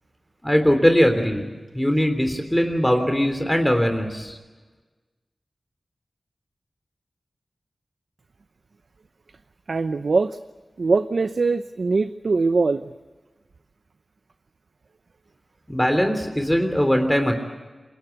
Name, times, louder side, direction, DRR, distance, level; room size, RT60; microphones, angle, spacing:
voice 1, 0.4-1.5 1.7-4.4 15.7-17.4, equal, 10° left, 5 dB, 3.3 m, -20 dB
voice 2, 9.7-10.4 10.8-12.9, right 4 dB, 70° right, 10 dB, 0.8 m, -22 dB
28.0 x 22.5 x 8.1 m, 1.3 s
wide cardioid pair, 70°, 0 cm